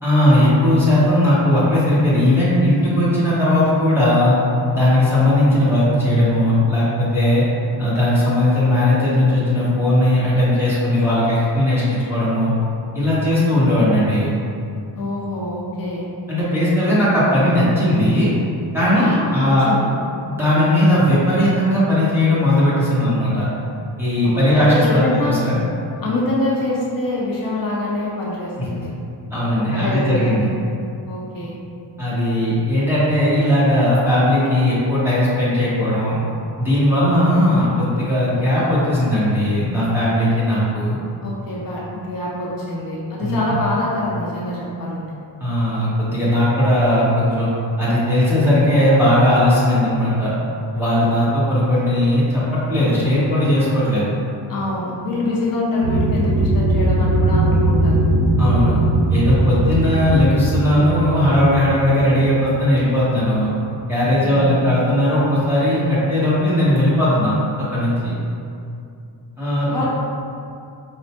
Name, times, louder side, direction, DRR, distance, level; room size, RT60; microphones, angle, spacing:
voice 1, 0.0-4.4 4.7-7.4 7.8-12.5 12.9-14.3 16.3-18.3 18.7-19.7 20.2-23.5 24.0-25.6 29.3-30.5 32.0-36.2 36.6-41.0 43.2-43.6 45.4-47.5 47.8-50.3 50.7-54.1 58.4-58.8 59.1-63.5 63.9-67.3 67.7-68.1 69.4-69.9, left 1 dB, 5° right, -10 dB, 0.6 m, -17 dB
voice 2, 14.9-16.1 18.9-19.9 24.2-25.5 26.0-28.9 29.7-30.5 31.1-31.6 41.2-45.1 54.5-58.0 64.2-64.7 69.7-69.9, left 2 dB, 50° left, -5 dB, 0.5 m, -25 dB
sound 1, 55.8-63.7, right 2 dB, 75° right, 0.9 m, -19 dB
4.2 x 2.1 x 2.7 m, 2.6 s
wide cardioid pair, 170°, 45 cm